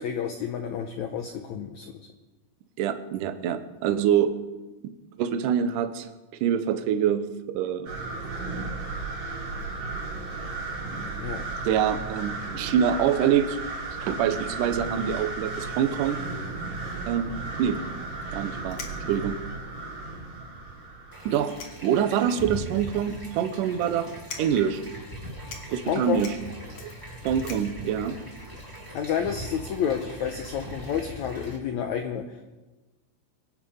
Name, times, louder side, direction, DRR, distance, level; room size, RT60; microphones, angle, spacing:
voice 1, 0.0-1.9 11.2-11.5 25.9-26.3 28.9-32.5, left 8 dB, 90° left, 5 dB, 1.6 m, -30 dB
voice 2, 2.8-4.3 4.8-6.1 6.4-7.9 11.6-13.6 14.0-16.2 17.1-17.3 17.6-17.8 18.3-18.8 19.1-19.4 21.3-21.5 21.8-24.1 24.4-24.8 25.7-26.3 26.8-26.9 27.2-28.2, right 9 dB, 70° right, 10 dB, 2.2 m, -25 dB
sound 1, 7.9-21.5, right 3 dB, 45° right, 5.7 m, -34 dB
sound 2, 18.2-18.3 18.7-19.4 20.0-20.1 20.4-20.5 21.3-22.2 22.6-22.7 23.4-23.7 24.2-24.7 25.1-25.2 25.4-29.1, left 5 dB, 50° left, 2.9 m, -44 dB
sound 3, 21.1-31.6, equal, 5° right, 2.5 m, -40 dB
24.5 x 8.7 x 5.6 m, 1.2 s
omnidirectional pair, 4.5 m